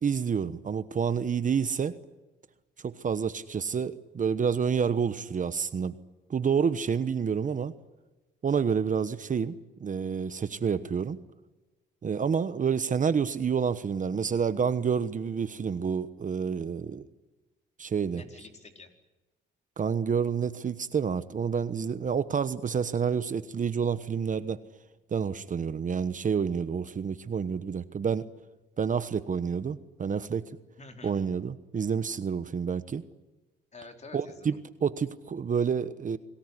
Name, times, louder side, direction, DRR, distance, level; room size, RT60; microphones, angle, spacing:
voice 1, 0.0-2.0 2.8-6.0 6.3-7.7 8.4-9.5 9.8-11.2 12.0-17.0 17.8-18.2 19.8-24.6 25.1-28.3 28.8-30.4 31.0-33.0 34.1-36.2, right 6 dB, 40° right, 13 dB, 1.1 m, -28 dB
voice 2, 18.1-18.9 30.8-31.2 33.7-34.6, left 3 dB, 35° left, 4 dB, 4.4 m, -48 dB
27.0 x 19.0 x 9.8 m, 1.1 s
cardioid pair, 90°, 20 cm